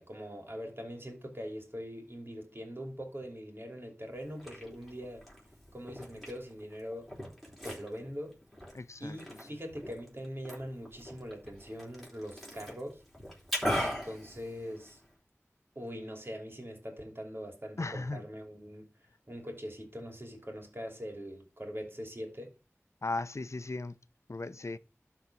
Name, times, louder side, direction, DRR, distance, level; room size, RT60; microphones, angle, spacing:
voice 1, 0.0-5.3 5.7-7.1 7.6-8.4 9.0-13.0 13.8-15.0 15.7-18.9 19.3-22.5, equal, 50° right, 2.8 m, -42 dB
Liquid, 4.1-15.1, equal, ahead, 4.2 m, -40 dB
voice 2, 8.7-9.2 17.8-18.2 23.0-24.0 24.3-24.8, left 3 dB, 70° left, 0.5 m, -36 dB
12.0 x 4.1 x 5.9 m
wide cardioid pair, 45°, 5 cm